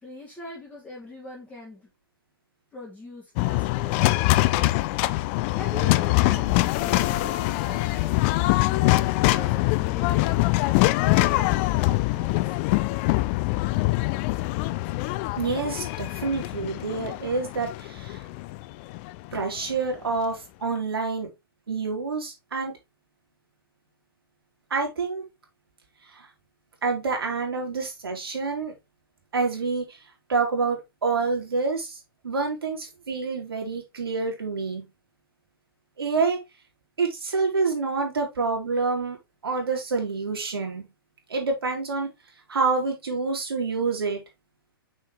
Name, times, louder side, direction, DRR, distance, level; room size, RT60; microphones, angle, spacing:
voice 1, 0.0-1.8 2.7-4.3 5.5-10.3 10.7-12.4, left 2 dB, 10° left, 2.8 m, -42 dB
sound 1, 3.4-19.6, left 19 dB, 30° left, 0.3 m, -24 dB
voice 2, 15.4-18.2 19.3-21.3 21.7-22.7 24.7-25.2 26.1-26.3 26.8-28.7 29.3-30.0 30.3-34.8 36.0-36.4 37.0-39.2 39.4-40.8 41.3-42.1 42.5-44.2, right 4 dB, 80° right, 3.3 m, -27 dB
6.6 x 4.6 x 3.2 m
hypercardioid pair, 130°, 12 cm